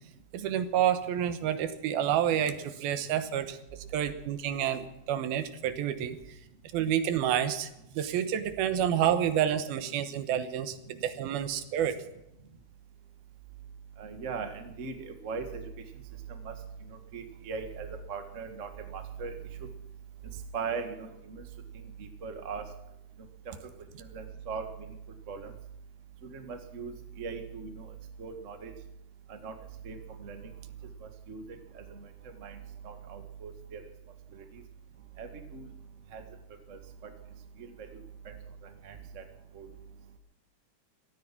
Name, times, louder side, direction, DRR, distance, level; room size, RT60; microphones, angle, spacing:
voice 1, 0.3-6.4 6.7-7.7 8.0-12.0, right 10 dB, 75° right, 10 dB, 2.9 m, -29 dB
voice 2, 14.0-15.6 16.4-16.5 17.1-19.3 20.5-21.4 22.0-22.6 24.0-24.6 25.3-25.5 26.3-26.9 27.2-27.8 28.2-28.7 29.3-29.5 29.8-30.4 31.3-31.4 31.7-31.8 32.4-32.6 32.8-33.8 35.2-35.7 36.1-36.2 36.7-36.8 38.8-39.2 39.5-39.6, right 5 dB, 50° right, 5 dB, 0.8 m, -39 dB
17.5 x 13.5 x 5.9 m, 0.89 s
omnidirectional pair, 4.5 m